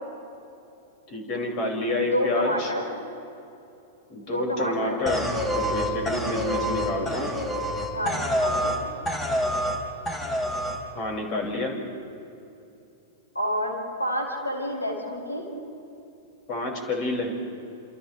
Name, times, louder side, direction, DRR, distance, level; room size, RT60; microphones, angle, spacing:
voice 1, 1.1-2.7 4.1-7.4 10.9-11.7 16.5-17.3, left 2 dB, 45° left, 0 dB, 5.6 m, -29 dB
voice 2, 2.1-2.9 4.2-5.0 7.9-8.7 13.3-15.5, equal, 90° left, -1 dB, 5.4 m, -29 dB
sound 1, 5.1-8.8 9.1-9.8 10.1-10.8, equal, 15° left, 4.0 m, -27 dB
28.0 x 28.0 x 3.3 m, 2.7 s
figure-of-eight pair, 100°, 0 cm